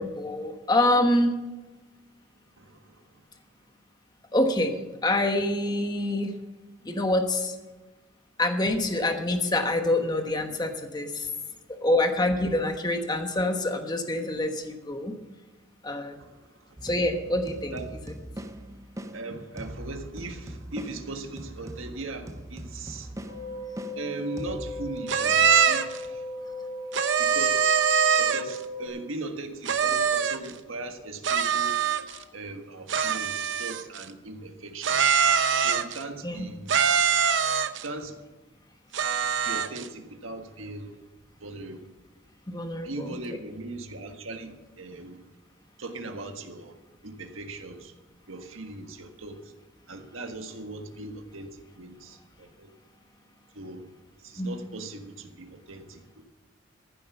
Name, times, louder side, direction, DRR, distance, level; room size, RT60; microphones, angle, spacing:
voice 1, 0.0-1.4 4.3-4.7 5.0-6.3 6.8-7.5 8.4-11.3 11.8-15.1 15.8-16.2 16.8-17.7 36.2-36.5 42.5-43.1 54.4-54.5, left 1 dB, 20° left, 5 dB, 1.2 m, -26 dB
voice 2, 2.6-3.2 16.2-16.8 17.7-17.9 19.1-23.2 23.9-26.3 27.2-27.8 28.2-31.8 32.3-35.2 35.6-36.8 37.8-38.2 39.4-41.0 41.4-41.9 42.8-45.3 45.8-46.8 47.0-47.9 48.3-49.5 49.9-52.7 53.5-53.9 54.2-56.2, right 2 dB, 85° right, 5 dB, 1.6 m, -39 dB
sound 1, 16.8-25.0, right 1 dB, 15° right, 0.5 m, -41 dB
sound 2, 23.3-28.9, left 1 dB, 85° left, 2.1 m, -37 dB
sound 3, 25.1-26.0 26.9-28.6 29.6-30.5 31.2-32.2 32.9-34.0 34.8-36.0 36.7-37.9 38.9-39.9, right 7 dB, 65° right, 0.7 m, -23 dB
15.0 x 7.8 x 7.0 m, 1.2 s
head